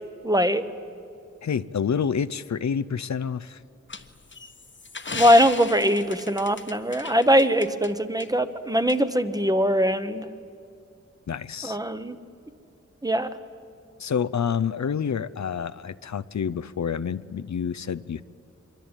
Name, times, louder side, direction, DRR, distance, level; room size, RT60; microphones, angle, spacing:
voice 1, 0.2-0.6 5.1-10.2 11.6-12.2 13.0-13.3, equal, 15° right, 10 dB, 1.1 m, -21 dB
voice 2, 1.4-3.6 5.1-5.2 11.3-11.8 14.0-18.2, left 7 dB, 70° left, 16 dB, 0.6 m, -28 dB
sound 1, 3.9-7.9 8.2-8.3 8.9-9.0, left 4 dB, 40° left, 1.2 m, -36 dB
25.5 x 23.0 x 9.0 m, 2.4 s
wide cardioid pair, 100°, 29 cm